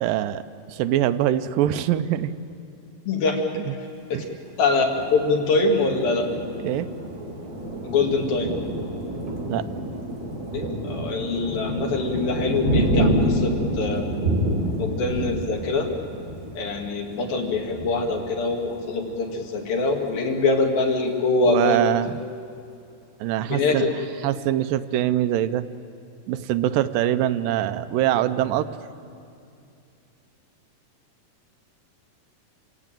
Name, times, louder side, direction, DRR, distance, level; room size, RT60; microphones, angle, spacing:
voice 1, 0.0-0.4 0.7-2.3 3.5-3.7 4.1-4.3 6.6-6.9 9.5-9.7 21.4-22.1 23.2-23.9 24.2-25.7 26.3-28.8, right 12 dB, 80° right, 11 dB, 2.3 m, -23 dB
voice 2, 3.1-3.4 4.1-4.2 4.6-6.3 7.8-8.5 10.5-14.1 14.8-15.9 16.6-21.8 23.5-23.9, left 3 dB, 90° left, 2 dB, 4.1 m, -24 dB
Thunder, 4.9-19.3 19.8-19.9 20.2-20.8, right 1 dB, 35° right, 3.7 m, -28 dB
27.5 x 16.5 x 9.0 m, 2.5 s
omnidirectional pair, 4.1 m